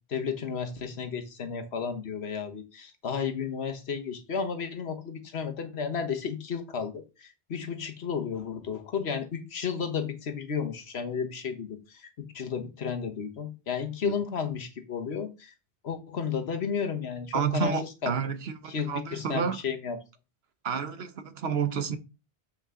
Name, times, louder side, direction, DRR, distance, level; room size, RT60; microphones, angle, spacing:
voice 1, 0.1-15.5 15.8-18.1 18.7-20.0, left 6 dB, 85° left, 1.4 m, -33 dB
voice 2, 17.3-19.6 20.6-22.0, right 6 dB, 75° right, 1.1 m, -30 dB
7.2 x 5.6 x 3.7 m
omnidirectional pair, 1.1 m